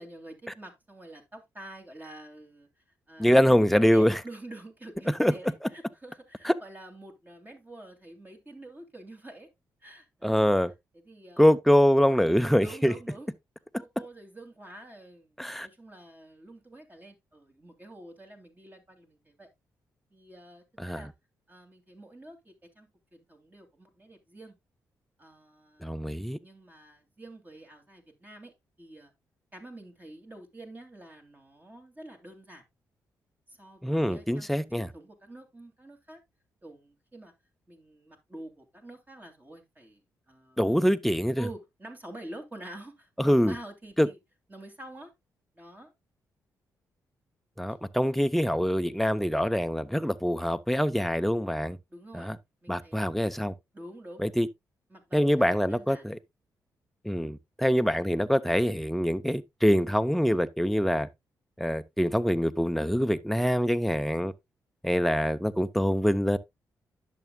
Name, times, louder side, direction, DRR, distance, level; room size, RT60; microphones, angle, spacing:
voice 1, 0.0-2.7 3.1-9.5 9.8-10.5 10.9-11.5 12.2-13.3 13.8-19.5 20.1-21.1 21.5-24.6 25.2-26.1 26.4-28.5 28.8-29.1 29.5-32.6 33.5-36.2 36.6-37.3 37.7-40.0 40.3-40.6 41.4-44.2 44.5-45.1 45.6-45.9 47.6-47.8 51.9-52.3 52.6-53.1 53.7-54.2 54.9-56.1, right 1 dB, 25° right, 2.9 m, -47 dB
voice 2, 3.2-4.2 5.2-5.3 6.4-6.5 10.2-10.7 11.4-12.9 15.4-15.7 20.8-21.1 25.8-26.4 33.8-34.9 40.6-41.4 43.2-43.5 44.0-44.1 47.6-51.8 52.1-52.4 52.7-53.5 54.2-54.5 55.1-56.2 57.0-61.1 61.6-64.3 64.8-66.4, equal, ahead, 0.8 m, -24 dB
10.5 x 7.1 x 2.3 m
supercardioid pair, 50°, 7 cm